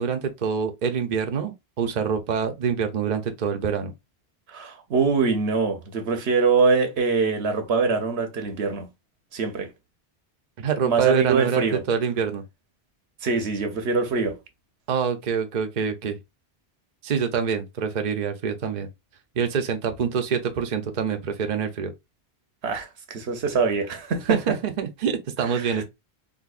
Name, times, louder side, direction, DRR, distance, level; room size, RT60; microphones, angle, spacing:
voice 1, 0.0-3.9 10.6-12.4 14.9-16.2 17.0-18.9 19.4-21.9 24.3-25.8, right 7 dB, 50° right, 0.7 m, -26 dB
voice 2, 4.5-8.9 9.3-9.7 10.8-11.8 13.2-14.4 22.6-24.4 25.5-25.8, right 4 dB, 85° right, 1.1 m, -23 dB
3.9 x 2.6 x 2.4 m
omnidirectional pair, 1.0 m